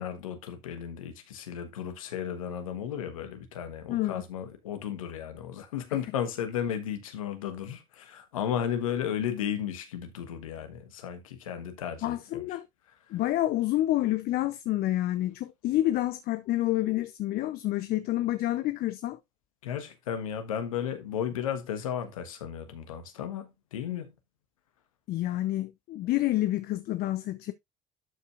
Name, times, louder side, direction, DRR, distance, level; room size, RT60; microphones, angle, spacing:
voice 1, 0.0-12.5 19.6-24.1, left 9 dB, 90° left, 1.3 m, -34 dB
voice 2, 3.9-4.2 12.0-12.7 13.1-19.2 25.1-27.5, left 15 dB, 65° left, 0.7 m, -28 dB
12.0 x 5.4 x 2.5 m
hypercardioid pair, 60°, 17 cm